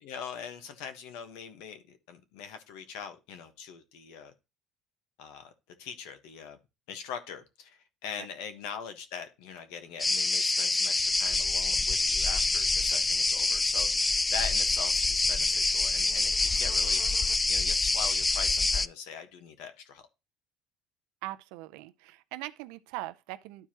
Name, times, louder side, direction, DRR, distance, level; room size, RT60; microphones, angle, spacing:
voice 1, 0.0-4.3 5.2-5.5 5.8-6.6 6.9-20.1, left 7 dB, 85° left, 1.2 m, -42 dB
sound 1, 10.0-18.9, left 3 dB, 15° left, 0.3 m, -26 dB
voice 2, 21.2-23.7, right 17 dB, 85° right, 0.5 m, -41 dB
12.0 x 4.7 x 2.9 m
supercardioid pair, 100°, 0 cm